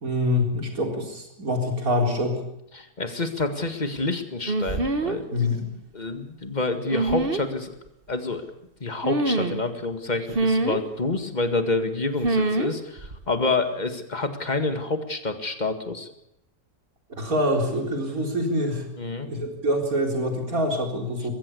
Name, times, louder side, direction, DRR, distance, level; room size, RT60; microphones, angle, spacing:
voice 1, 0.0-2.4 5.3-5.7 17.1-18.8 19.2-21.3, left 1 dB, 65° right, 2 dB, 4.6 m, -25 dB
voice 2, 2.7-5.5 5.9-7.7 8.1-8.4 8.8-16.1 19.0-19.3, left 3 dB, 30° left, 8 dB, 2.0 m, -28 dB
sound 1, 4.5-5.2 6.9-7.4 9.0-9.6 10.3-10.8 12.2-12.7 13.0-13.2, right 2 dB, 35° right, 1.7 m, -24 dB
21.5 x 15.5 x 8.4 m, 0.82 s
omnidirectional pair, 1.6 m